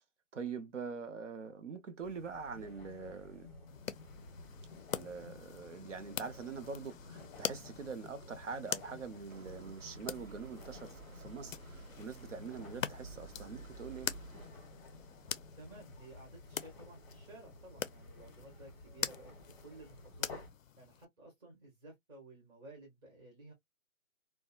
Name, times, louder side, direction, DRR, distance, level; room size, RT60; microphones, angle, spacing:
voice 1, 0.3-3.5 4.9-14.1, right 5 dB, 60° right, 0.7 m, -44 dB
sound 1, 2.0-20.5, left 2 dB, 5° left, 0.7 m, -54 dB
sound 2, 3.7-21.1, left 9 dB, 75° left, 0.5 m, -45 dB
sound 3, 9.3-14.5, right 3 dB, 85° right, 0.9 m, -52 dB
voice 2, 15.5-19.3 19.6-20.3 20.8-23.5, right 2 dB, 20° right, 1.0 m, -55 dB
2.6 x 2.1 x 2.3 m
figure-of-eight pair, 145°, 41 cm